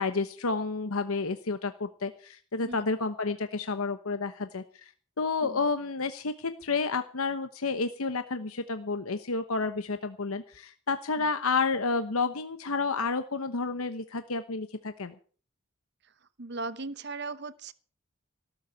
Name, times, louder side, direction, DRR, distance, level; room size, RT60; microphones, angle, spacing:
voice 1, 0.0-4.9 5.2-15.1, left 4 dB, 80° left, 9 dB, 1.0 m, -30 dB
voice 2, 16.4-17.7, right 3 dB, 50° right, 15 dB, 1.0 m, -38 dB
18.0 x 7.4 x 8.4 m, 0.43 s
head